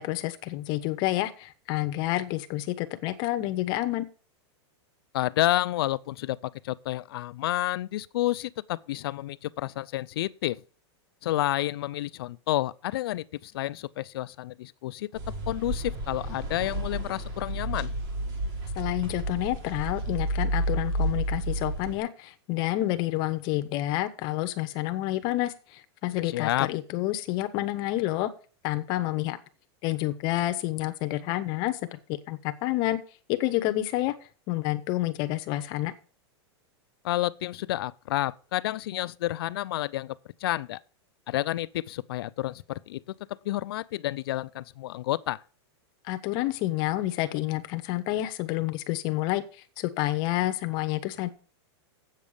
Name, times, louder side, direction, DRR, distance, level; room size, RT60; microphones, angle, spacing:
voice 1, 0.0-4.1 18.8-28.3 28.6-29.4 29.8-33.0 33.3-34.1 34.5-35.9 46.1-49.4 49.8-51.3, left 16 dB, 30° left, 0.8 m, -29 dB
voice 2, 5.1-10.6 11.2-15.1 15.5-17.9 26.3-26.7 37.0-40.8 41.3-43.0 43.3-45.4, left 15 dB, 55° left, 0.5 m, -30 dB
sound 1, 15.2-22.0, right 1 dB, 30° right, 1.8 m, -31 dB
8.2 x 6.5 x 7.0 m
supercardioid pair, 170°, 14 cm